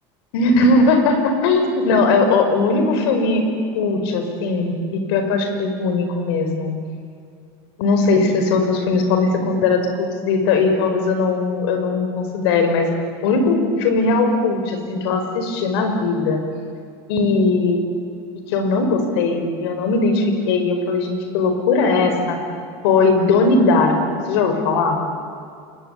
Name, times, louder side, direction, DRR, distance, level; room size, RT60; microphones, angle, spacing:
voice 1, 0.3-3.4 3.7-6.7 7.8-12.9 13.2-16.4 17.1-17.8 18.5-22.4 22.8-25.0, left 3 dB, 80° left, 6 dB, 5.2 m, -19 dB
27.5 x 22.0 x 8.5 m, 2.4 s
cardioid pair, 175°, 13 cm